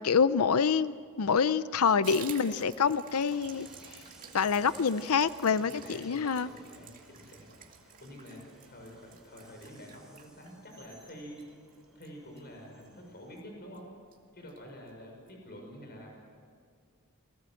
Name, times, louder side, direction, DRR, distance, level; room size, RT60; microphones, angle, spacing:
voice 1, 0.0-3.7 4.3-6.5, left 6 dB, 80° left, 15 dB, 0.6 m, -26 dB
Water tap faucet / Bathtub (filling or washing), 2.0-13.0 13.3-13.5 13.7-13.8 14.1-14.6 14.9-15.0 15.3-15.4, right 6 dB, 40° right, 2.3 m, -51 dB
Train, 3.0-13.4, right 1 dB, ahead, 4.2 m, -59 dB
voice 2, 5.6-7.5 8.0-11.4 11.9-13.9 14.3-16.1, equal, 45° left, 1 dB, 6.2 m, -48 dB
29.0 x 20.0 x 7.8 m, 2.2 s
head